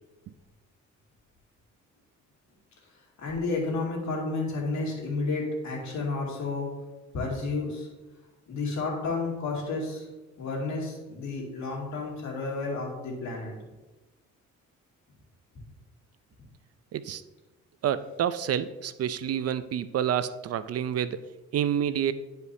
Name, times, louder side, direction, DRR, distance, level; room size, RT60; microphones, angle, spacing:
voice 1, 3.2-6.7 7.1-7.9 8.5-10.1 10.4-13.5, left 3 dB, 70° left, -2 dB, 2.5 m, -31 dB
voice 2, 17.8-22.1, right 9 dB, 55° right, 13 dB, 0.5 m, -28 dB
11.0 x 5.1 x 2.7 m, 1.1 s
cardioid pair, 90°, 30 cm